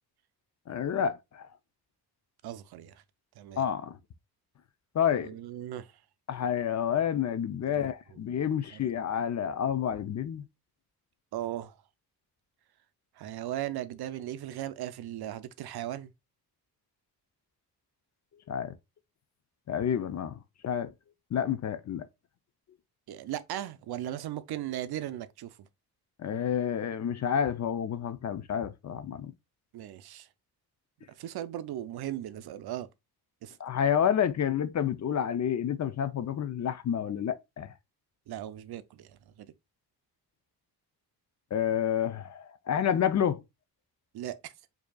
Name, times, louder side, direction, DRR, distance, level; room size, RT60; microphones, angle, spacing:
voice 1, 0.7-1.5 3.6-4.0 4.9-5.3 6.3-10.5 18.5-18.7 19.7-20.9 21.3-22.1 26.2-29.3 33.6-37.7 41.5-43.4, left 8 dB, 45° left, 0.5 m, -29 dB
voice 2, 2.4-2.9 3.4-3.6 5.2-5.9 8.7-8.9 11.3-11.8 13.2-16.1 23.1-25.7 29.7-30.3 31.2-32.9 33.4-33.6 38.3-39.5 44.1-44.5, right 12 dB, 70° right, 0.5 m, -37 dB
4.6 x 2.8 x 2.2 m
cardioid pair, 70°, 40 cm